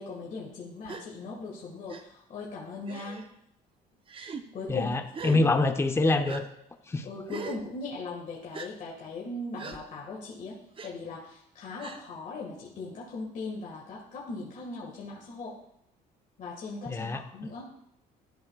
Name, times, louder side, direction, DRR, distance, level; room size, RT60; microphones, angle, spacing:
voice 1, 0.0-3.2 4.5-5.0 5.3-5.4 7.0-10.6 10.8-15.5 16.4-17.6, left 3 dB, 50° left, -4 dB, 1.6 m, -39 dB
Gasp, 0.8-1.0 1.9-2.0 2.9-3.3 4.1-4.4 5.1-5.4 6.2-6.4 7.3-7.6 8.5-8.7 9.6-9.8 10.8-10.9 11.8-12.0, right 5 dB, 30° right, 0.6 m, -39 dB
voice 2, 4.7-6.5 6.9-7.0 16.9-17.5, left 2 dB, 15° left, 7 dB, 0.6 m, -26 dB
12.0 x 5.1 x 2.3 m, 0.76 s
cardioid pair, 110°, 17 cm